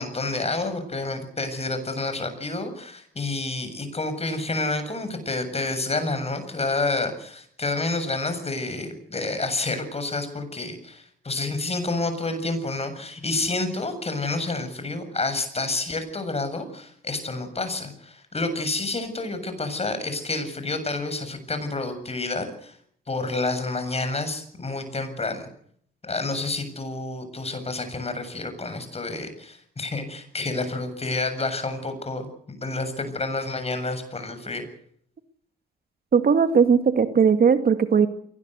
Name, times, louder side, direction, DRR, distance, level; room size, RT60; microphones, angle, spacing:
voice 1, 0.0-22.8 23.1-25.5 26.0-34.6, left 3 dB, 30° left, 9 dB, 7.5 m, -29 dB
voice 2, 36.1-38.1, right 6 dB, 50° right, 9 dB, 2.2 m, -18 dB
22.5 x 19.0 x 8.2 m, 0.64 s
supercardioid pair, 55°, 20 cm